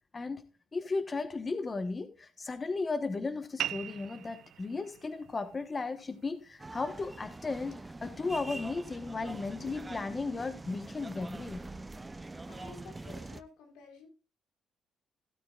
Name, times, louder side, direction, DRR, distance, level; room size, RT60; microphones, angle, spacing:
voice 1, 0.7-11.7, left 3 dB, 30° left, 1.1 m, -35 dB
sound 1, 3.6-8.6, right 11 dB, 75° right, 0.4 m, -43 dB
sound 2, 6.6-13.4, right 2 dB, 20° right, 0.6 m, -44 dB
voice 2, 12.5-14.1, left 4 dB, 90° left, 3.7 m, -51 dB
16.0 x 8.8 x 2.4 m
cardioid pair, 90°, 0 cm